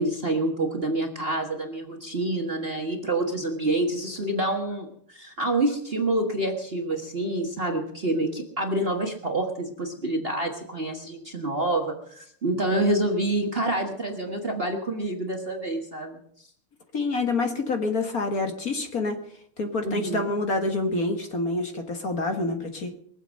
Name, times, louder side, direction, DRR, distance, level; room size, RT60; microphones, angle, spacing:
voice 1, 0.0-16.2 19.8-20.3, right 1 dB, 30° right, 3 dB, 1.5 m, -27 dB
voice 2, 16.9-19.2 19.6-22.9, left 3 dB, 45° left, 5 dB, 1.9 m, -27 dB
23.0 x 8.0 x 6.4 m, 0.68 s
omnidirectional pair, 2.4 m